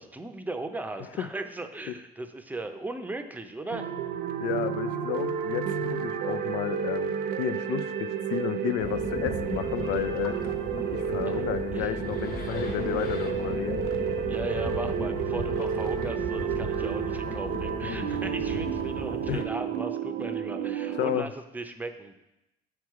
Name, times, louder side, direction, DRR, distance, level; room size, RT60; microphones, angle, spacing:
voice 1, 0.0-3.9 11.3-11.5 11.7-11.9 14.3-22.2, right 2 dB, 10° right, 7 dB, 0.6 m, -37 dB
sound 1, 3.7-21.2, right 8 dB, 70° right, 0.6 m, -31 dB
voice 2, 4.4-10.4 10.9-13.8 17.8-18.1 19.3-19.4 20.9-21.3, left 11 dB, 80° left, 11 dB, 0.4 m, -32 dB
sound 2, 8.8-19.4, left 2 dB, 60° left, 1.0 m, -36 dB
7.3 x 4.7 x 4.7 m, 0.92 s
cardioid pair, 110°, 17 cm